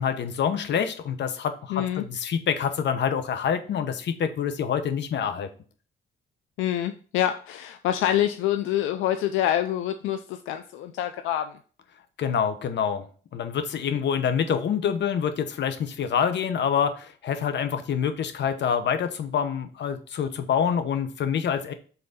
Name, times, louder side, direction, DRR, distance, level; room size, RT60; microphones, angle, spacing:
voice 1, 0.0-5.5 12.2-13.1 13.3-21.7, left 7 dB, 65° left, 9 dB, 1.0 m, -26 dB
voice 2, 1.7-2.0 6.6-11.5, left 11 dB, 90° left, 9 dB, 0.5 m, -26 dB
5.7 x 3.8 x 5.3 m, 0.40 s
cardioid pair, 90°, 20 cm